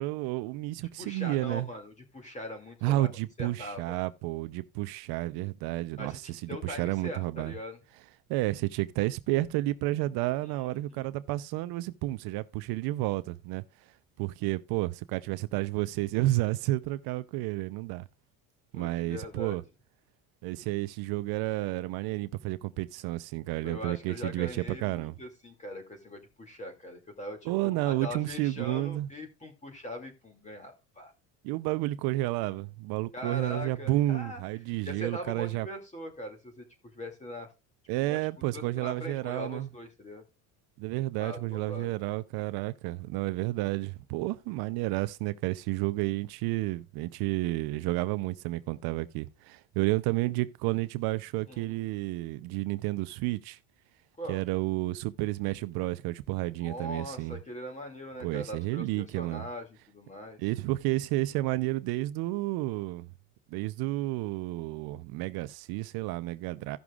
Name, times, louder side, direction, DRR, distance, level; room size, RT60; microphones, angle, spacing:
voice 1, 0.0-1.7 2.8-7.5 8.3-13.6 14.2-18.0 18.7-19.6 20.4-25.1 27.5-29.1 31.4-35.7 37.9-39.7 40.8-53.6 54.3-57.4 58.2-59.4 60.4-63.1 63.5-66.8, right 18 dB, 75° right, 0.6 m, -31 dB
voice 2, 1.0-3.1 3.4-4.0 6.0-7.8 10.7-11.1 18.7-19.6 23.6-31.1 33.1-34.4 34.9-36.6 36.9-37.5 38.0-40.2 41.2-42.0 51.5-51.8 54.2-54.4 56.6-60.4, equal, 20° left, 2.3 m, -41 dB
16.5 x 6.1 x 2.4 m
cardioid pair, 115°, 38 cm